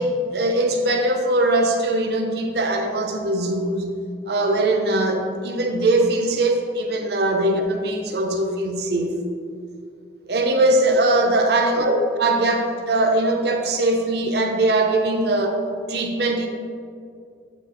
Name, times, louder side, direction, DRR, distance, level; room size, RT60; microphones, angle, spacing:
voice 1, 0.0-9.2 10.3-15.6 15.9-16.5, right 2 dB, 60° right, 3 dB, 0.6 m, -21 dB
8.7 x 4.3 x 3.1 m, 2.3 s
head